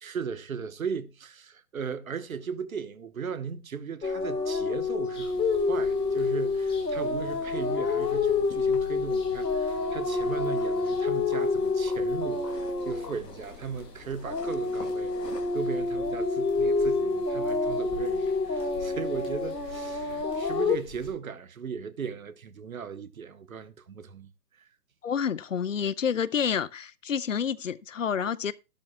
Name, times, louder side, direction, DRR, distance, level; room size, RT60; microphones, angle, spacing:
voice 1, 0.0-24.3, right 6 dB, 55° right, 1.3 m, -37 dB
sound 1, 4.0-13.8 14.2-20.8, left 3 dB, 75° left, 1.5 m, -28 dB
sound 2, 5.1-21.1, left 3 dB, 10° left, 2.2 m, -49 dB
voice 2, 25.0-28.5, left 7 dB, 50° left, 0.7 m, -29 dB
12.5 x 12.0 x 2.3 m
figure-of-eight pair, 135°, 49 cm